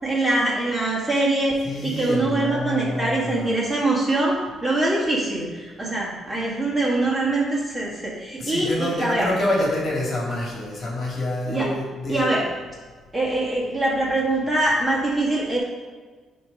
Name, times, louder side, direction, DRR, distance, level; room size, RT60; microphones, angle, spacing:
voice 1, 0.0-1.5 1.8-4.4 4.6-9.3 11.5-11.7 12.1-12.4 13.1-15.6, right 2 dB, 15° right, -5 dB, 1.8 m, -23 dB
voice 2, 1.6-3.7 8.4-12.3, left 1 dB, 45° left, -3 dB, 2.0 m, -27 dB
9.0 x 3.1 x 5.3 m, 1.4 s
cardioid pair, 120°, 0 cm